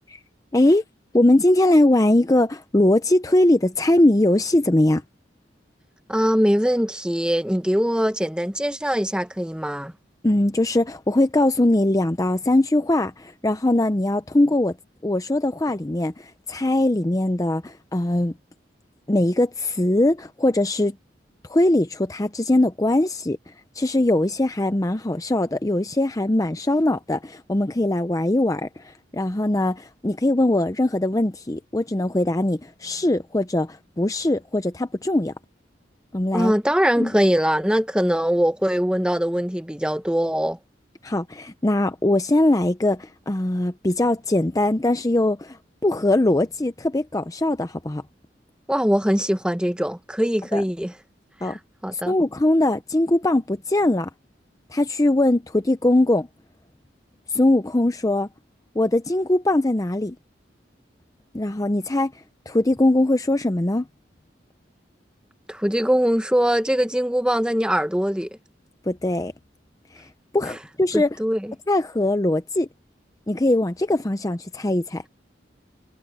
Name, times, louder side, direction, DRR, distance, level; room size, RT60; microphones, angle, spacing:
voice 1, 0.5-0.8 1.1-5.0 10.2-14.7 15.0-18.3 19.1-20.9 21.5-23.4 23.8-35.3 36.1-36.5 37.0-37.1 41.0-45.6 45.8-48.0 50.5-50.6 51.4-51.6 51.9-54.1 54.7-56.3 57.3-58.3 58.8-60.2 61.3-62.1 62.5-63.8 68.9-69.3 69.9-70.0 70.3-71.1 71.7-72.7 73.3-75.0, left 1 dB, 20° left, 0.6 m, -21 dB
voice 2, 6.1-9.9 36.3-40.6 48.7-50.9 51.4-51.6 51.8-52.1 65.5-68.3 70.9-71.5, equal, 5° right, 1.2 m, -22 dB
head